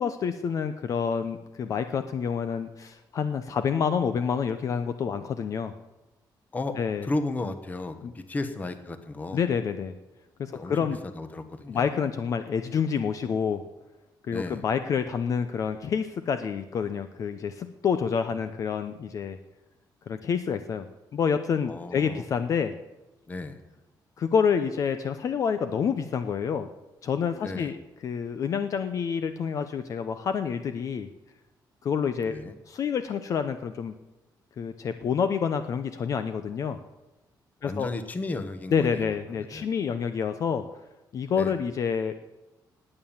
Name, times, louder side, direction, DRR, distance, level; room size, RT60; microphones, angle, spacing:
voice 1, 0.0-5.7 6.8-7.1 8.0-8.1 9.3-10.0 10.4-11.0 11.7-13.6 14.2-19.4 20.1-20.9 21.1-22.7 24.2-26.7 27.0-27.8 28.0-31.1 31.8-32.4 32.7-33.9 34.6-36.8 37.6-37.9 38.7-40.6 41.1-42.1, left 6 dB, 45° left, 10 dB, 0.7 m, -28 dB
voice 2, 6.5-9.4 10.5-11.9 14.3-14.6 21.7-22.2 23.3-23.6 27.3-27.7 32.2-32.5 37.6-39.7 41.3-41.6, left 2 dB, 20° left, 10 dB, 1.2 m, -34 dB
19.0 x 8.9 x 7.3 m, 1.0 s
cardioid pair, 175°, 8 cm